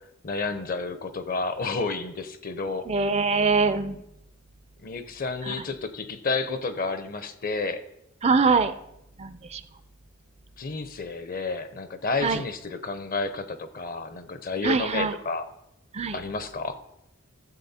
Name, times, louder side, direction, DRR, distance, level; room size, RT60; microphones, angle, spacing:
voice 1, 0.2-2.9 4.8-7.8 10.6-15.4 16.1-16.8, left 3 dB, 45° left, 11 dB, 0.8 m, -31 dB
voice 2, 2.9-4.0 5.4-5.6 8.2-8.7 9.2-9.6 12.2-12.4 14.6-15.1 15.9-16.2, right 4 dB, 30° right, 12 dB, 0.5 m, -23 dB
13.5 x 7.5 x 4.3 m, 0.82 s
head